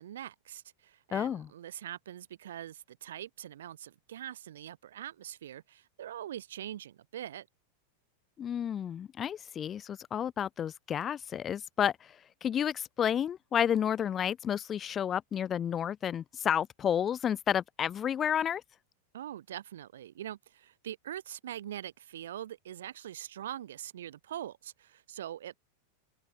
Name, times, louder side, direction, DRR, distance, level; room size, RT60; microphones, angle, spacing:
voice 1, 0.0-7.5 19.1-25.6, right 11 dB, 60° right, 0.7 m, -43 dB
voice 2, 1.1-1.5 8.4-11.9 12.4-18.6, left 9 dB, 25° left, 0.5 m, -31 dB
figure-of-eight pair, 90°, 0 cm